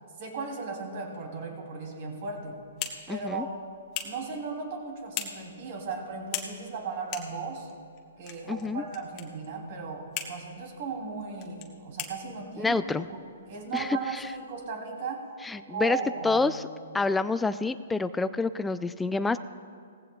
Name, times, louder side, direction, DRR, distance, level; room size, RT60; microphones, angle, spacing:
voice 1, 0.2-2.6 3.1-3.5 4.0-7.7 8.2-12.8 13.1-13.2 13.5-15.3 15.7-16.4, right 4 dB, 50° right, 2 dB, 2.9 m, -36 dB
sound 1, 2.2-14.6, left 9 dB, 30° left, 1.3 m, -43 dB
voice 2, 3.1-3.5 8.5-8.8 12.6-13.1 13.7-14.3 15.4-16.6 16.9-19.4, left 3 dB, 5° left, 13 dB, 0.4 m, -28 dB
19.0 x 15.0 x 2.3 m, 2.3 s
hypercardioid pair, 140°, 0 cm